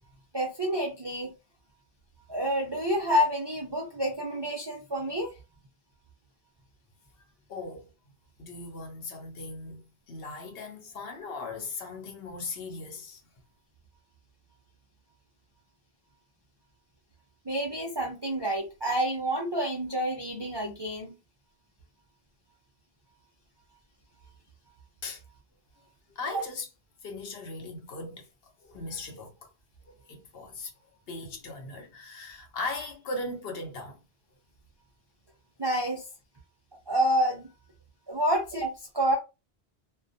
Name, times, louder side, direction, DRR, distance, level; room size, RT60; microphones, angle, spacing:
voice 1, 0.3-1.3 2.3-5.3 17.5-21.1 35.6-36.0 36.9-37.5 38.1-39.2, equal, 40° right, 0.3 m, -28 dB
voice 2, 7.5-7.9 8.4-13.2 25.0-25.2 26.1-26.7 27.0-28.3 28.6-29.5 30.1-30.7 31.1-34.0, left 3 dB, 65° left, 0.9 m, -38 dB
2.2 x 2.2 x 2.6 m
omnidirectional pair, 1.1 m